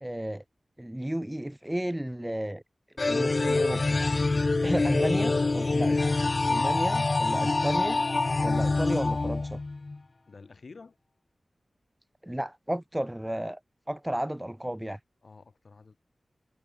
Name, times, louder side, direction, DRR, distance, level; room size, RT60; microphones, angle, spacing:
voice 1, 0.0-0.4 0.8-2.6 3.1-4.0 4.6-6.0 6.5-8.0 8.4-9.6 12.2-13.6 13.9-15.0, right 1 dB, 10° right, 1.0 m, -32 dB
sound 1, 3.0-10.0, left 3 dB, 50° left, 0.4 m, -25 dB
voice 2, 4.6-5.1 10.3-11.0 15.2-16.0, left 4 dB, 70° left, 7.7 m, -50 dB
wide cardioid pair, 70°, 0 cm